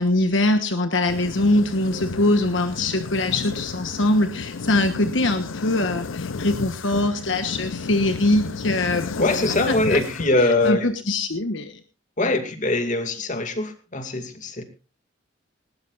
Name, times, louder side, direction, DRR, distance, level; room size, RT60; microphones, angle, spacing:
voice 1, 0.0-9.0 9.7-10.0 10.4-11.8 12.2-12.4, left 2 dB, 70° left, 8 dB, 1.3 m, -22 dB
sound 1, 1.1-10.7, left 4 dB, 90° left, 0.7 m, -32 dB
voice 2, 9.2-10.9 12.2-14.6, left 2 dB, 40° left, 7 dB, 2.4 m, -22 dB
20.0 x 18.0 x 2.6 m, 0.33 s
head